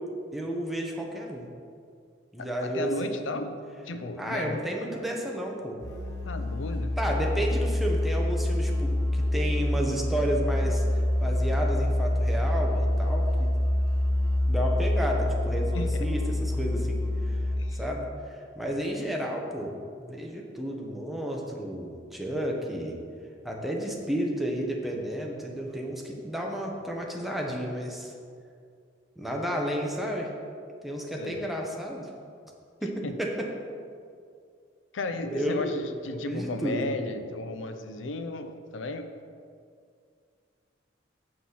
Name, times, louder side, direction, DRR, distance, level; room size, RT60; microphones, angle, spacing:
voice 1, 0.3-1.5 2.3-3.4 4.2-5.8 7.0-10.8 11.2-13.5 14.5-17.0 17.7-23.0 23.4-28.1 29.2-30.3 30.8-32.1 32.8-33.5 35.3-35.8 36.1-36.8, equal, ahead, -1 dB, 1.0 m, -32 dB
voice 2, 2.4-3.5 3.8-4.6 4.9-5.0 6.2-7.0 15.7-16.1 17.6-17.8 31.2-31.4 33.0-33.1 34.9-39.1, left 2 dB, 85° left, 8 dB, 0.6 m, -34 dB
Musical instrument, 5.8-17.8, left 1 dB, 15° left, 1.8 m, -26 dB
7.7 x 6.1 x 5.8 m, 2.3 s
head